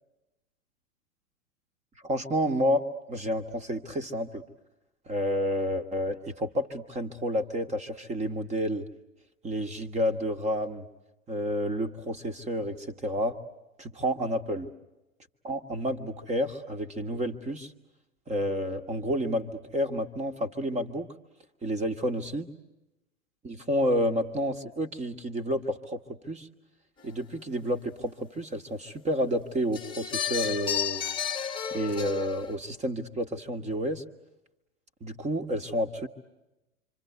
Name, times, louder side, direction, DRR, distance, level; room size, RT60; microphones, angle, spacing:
voice 1, 2.0-4.4 5.1-8.9 9.4-10.8 11.3-13.4 13.8-14.7 15.4-17.7 18.3-21.1 21.6-22.5 23.4-26.0 26.3-26.5 27.0-31.0 31.7-34.0 35.0-36.1, equal, 15° right, 9 dB, 1.5 m, -30 dB
sound 1, 29.7-32.6, left 9 dB, 10° left, 1.3 m, -32 dB
27.0 x 25.5 x 8.3 m, 0.98 s
figure-of-eight pair, 105°, 42 cm